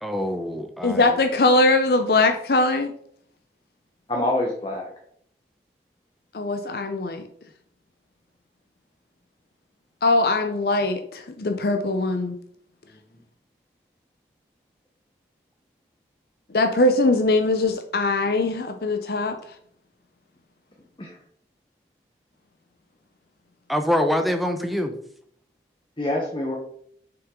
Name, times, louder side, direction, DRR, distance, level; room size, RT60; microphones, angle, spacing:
voice 1, 0.0-1.0 23.7-24.9, equal, ahead, 5 dB, 0.7 m, -24 dB
voice 2, 0.8-2.9 6.3-7.3 10.0-12.4 16.5-19.4, left 2 dB, 55° left, 6 dB, 0.6 m, -21 dB
voice 3, 4.1-4.9 12.9-13.0 21.0-21.2 26.0-26.6, left 1 dB, 25° left, 0 dB, 1.0 m, -26 dB
7.1 x 5.9 x 3.7 m, 0.65 s
head